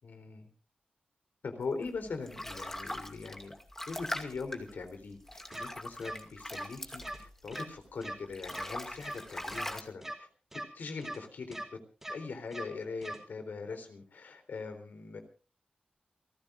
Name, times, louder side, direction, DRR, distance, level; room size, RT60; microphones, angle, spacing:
voice 1, 0.0-0.5 1.4-3.6 3.9-10.3 10.5-11.6 12.1-15.2, left 4 dB, 80° left, 7 dB, 3.7 m, -41 dB
sound 1, 1.8-7.9 8.2-9.8, left 1 dB, 15° left, 2.3 m, -42 dB
sound 2, 5.5-5.6 6.0-6.1 6.5-6.6 7.0-7.2 7.5-7.6 8.0-8.1 8.5-8.6 9.0-9.2 9.5-9.6 10.0-10.1 10.5-10.6 11.0-11.2 11.5-11.6 12.0-12.1 12.5-12.6 13.0-13.2, right 1 dB, 10° right, 4.5 m, -40 dB
28.5 x 15.0 x 2.6 m, 0.35 s
wide cardioid pair, 95°, 3 cm